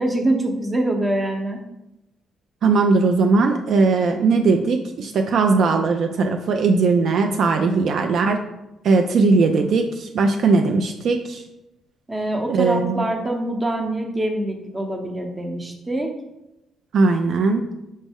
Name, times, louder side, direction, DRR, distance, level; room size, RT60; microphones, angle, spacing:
voice 1, 0.0-1.6 7.7-7.8 12.1-16.1, right 1 dB, 20° right, 3 dB, 0.7 m, -24 dB
voice 2, 2.6-8.4 8.8-11.4 12.5-13.0 16.9-17.7, right 4 dB, 65° right, 5 dB, 0.3 m, -19 dB
5.2 x 2.0 x 3.5 m, 0.90 s
supercardioid pair, 75°, 0 cm